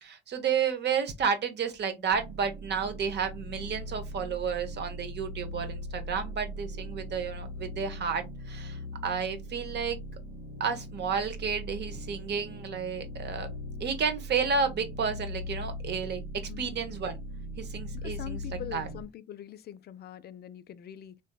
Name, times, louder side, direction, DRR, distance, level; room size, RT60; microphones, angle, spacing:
voice 1, 0.0-10.0 10.6-13.5 13.8-16.2 16.6-17.2 17.6-18.9, right 6 dB, 60° right, 0.8 m, -31 dB
sound 1, 2.1-19.0, equal, 75° right, 1.3 m, -40 dB
voice 2, 18.0-21.2, left 10 dB, 55° left, 0.4 m, -43 dB
3.4 x 2.6 x 2.2 m
cardioid pair, 90°, 20 cm